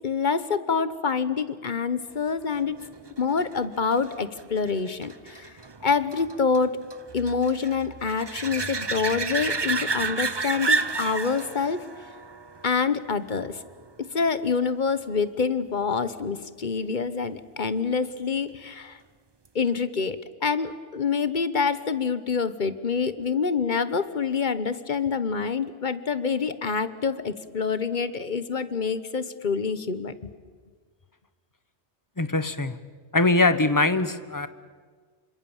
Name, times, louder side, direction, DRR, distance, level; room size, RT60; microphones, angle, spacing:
voice 1, 0.0-2.8 3.2-5.5 5.8-6.8 7.1-11.9 12.6-13.6 14.0-19.0 19.5-30.3, left 5 dB, 45° left, 14 dB, 1.2 m, -26 dB
sound 1, 2.5-13.8 19.5-19.6, right 4 dB, 25° right, 0.7 m, -32 dB
voice 2, 32.2-32.8 33.1-34.5, left 2 dB, 20° left, 13 dB, 1.0 m, -22 dB
27.5 x 25.5 x 7.2 m, 1.5 s
omnidirectional pair, 1.2 m